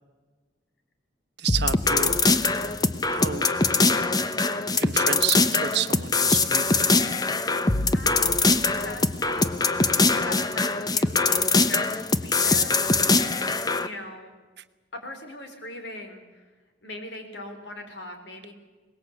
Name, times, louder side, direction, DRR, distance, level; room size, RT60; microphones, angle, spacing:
voice 1, 1.4-2.5 3.1-3.5 4.8-6.8, right 8 dB, 60° right, 11 dB, 1.1 m, -30 dB
sound 1, 1.5-13.9, left 3 dB, 20° left, 0.8 m, -22 dB
voice 2, 7.9-9.7 10.2-12.8 13.8-14.3 14.9-16.5 16.8-18.5, left 1 dB, 65° left, 5 dB, 4.0 m, -40 dB
22.5 x 20.0 x 8.3 m, 1.3 s
head